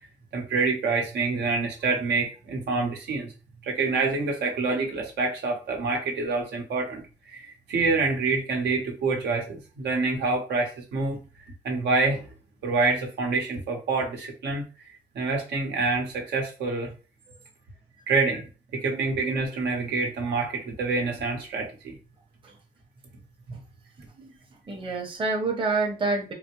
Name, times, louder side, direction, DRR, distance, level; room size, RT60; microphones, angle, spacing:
voice 1, 0.3-3.3 3.6-7.0 7.3-11.2 11.6-12.3 12.6-14.6 15.1-16.9 18.1-18.4 18.7-21.9, right 3 dB, 80° right, 1 dB, 1.0 m, -26 dB
voice 2, 24.7-26.3, right 3 dB, 30° right, 0 dB, 0.9 m, -28 dB
3.9 x 2.1 x 3.0 m, 0.32 s
cardioid pair, 100°, 17 cm